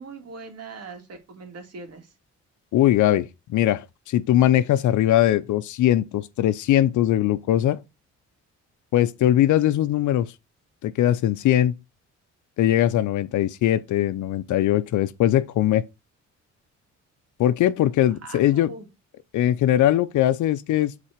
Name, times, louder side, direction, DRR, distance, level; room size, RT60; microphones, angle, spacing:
voice 1, 0.0-2.1 18.1-18.9, right 4 dB, 55° right, 2.5 m, -41 dB
voice 2, 2.7-7.8 8.9-10.3 10.8-11.7 12.6-15.8 17.4-18.7 19.3-21.1, left 12 dB, 75° left, 0.7 m, -21 dB
7.3 x 4.2 x 5.0 m
cardioid pair, 90°, 30 cm